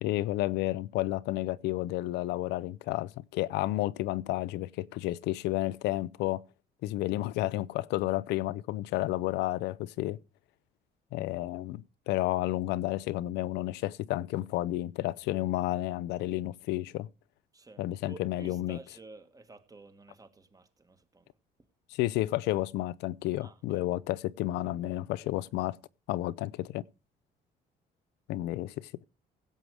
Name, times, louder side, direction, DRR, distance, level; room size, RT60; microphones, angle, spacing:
voice 1, 0.0-6.4 6.8-10.2 11.1-17.1 17.8-18.8 21.9-25.8 26.1-26.8 28.3-28.9, left 16 dB, 85° left, 0.6 m, -31 dB
voice 2, 17.5-21.3 23.4-23.9, right 3 dB, 20° right, 1.6 m, -52 dB
16.5 x 7.7 x 4.8 m
cardioid pair, 110°, 17 cm